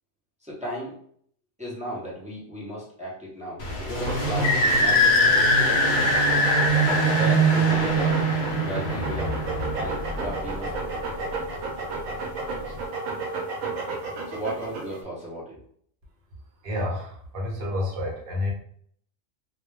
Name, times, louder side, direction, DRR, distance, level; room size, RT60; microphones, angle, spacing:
voice 1, 0.4-1.0 1.6-6.2 7.0-8.2 8.6-11.0 14.3-15.6, right 1 dB, 10° right, -6 dB, 0.4 m, -35 dB
sound 1, 3.6-10.9, equal, 60° left, 0.8 m, -22 dB
sound 2, 4.0-15.0, right 3 dB, 80° right, 1.0 m, -33 dB
voice 2, 16.6-18.5, left 1 dB, 50° right, -2 dB, 0.9 m, -29 dB
2.3 x 2.2 x 3.2 m, 0.64 s
omnidirectional pair, 1.3 m